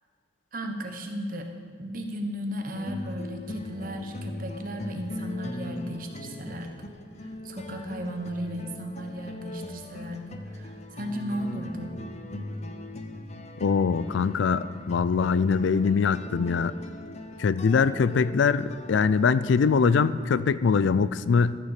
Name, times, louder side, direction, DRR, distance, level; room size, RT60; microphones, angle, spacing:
voice 1, 0.5-1.5 1.8-6.9 7.4-10.3 10.5-12.0, equal, 45° right, 4 dB, 1.1 m, -35 dB
sound 1, 2.7-20.3, left 1 dB, 35° left, 0.7 m, -39 dB
voice 2, 13.6-16.7 17.4-21.6, left 5 dB, 85° left, 16 dB, 0.4 m, -23 dB
13.0 x 6.9 x 6.6 m, 2.2 s
head